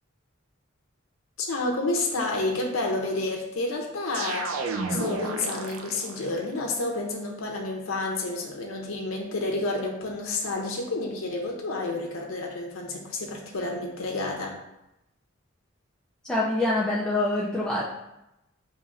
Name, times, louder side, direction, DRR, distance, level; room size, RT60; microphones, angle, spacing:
voice 1, 1.4-4.6 4.9-14.5, left 2 dB, 85° left, 0 dB, 0.7 m, -30 dB
sound 1, 4.1-6.4, right 3 dB, 80° right, 0.5 m, -32 dB
voice 2, 16.2-17.8, left 2 dB, 5° left, -6 dB, 0.4 m, -25 dB
5.4 x 3.0 x 2.5 m, 0.88 s
head